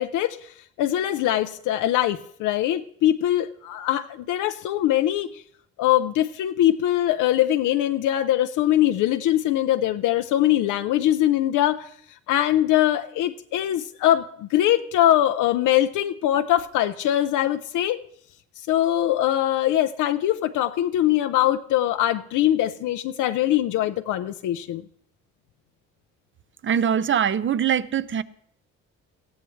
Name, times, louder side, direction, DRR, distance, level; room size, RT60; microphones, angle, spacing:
voice 1, 0.0-5.4 5.8-11.9 12.3-18.0 18.6-24.8, left 12 dB, 85° left, 8 dB, 0.6 m, -22 dB
voice 2, 26.6-28.2, right 8 dB, 40° right, 16 dB, 0.7 m, -22 dB
18.5 x 14.0 x 3.2 m, 0.65 s
cardioid pair, 90°, 30 cm